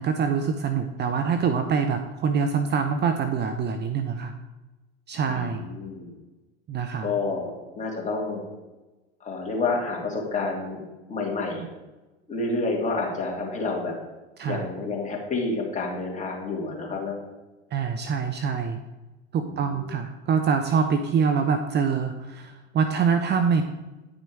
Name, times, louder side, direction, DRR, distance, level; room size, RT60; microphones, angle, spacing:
voice 1, 0.0-4.3 5.1-5.6 6.7-7.1 14.4-14.7 17.7-18.8 19.3-23.6, right 6 dB, 30° right, 7 dB, 0.7 m, -25 dB
voice 2, 5.2-6.1 7.0-7.5 7.8-8.4 9.2-10.8 11.1-11.6 12.3-13.9 14.5-17.2 19.4-19.9, left 3 dB, 20° left, -1 dB, 2.8 m, -29 dB
10.0 x 6.1 x 4.7 m, 1.1 s
hypercardioid pair, 85°, 34 cm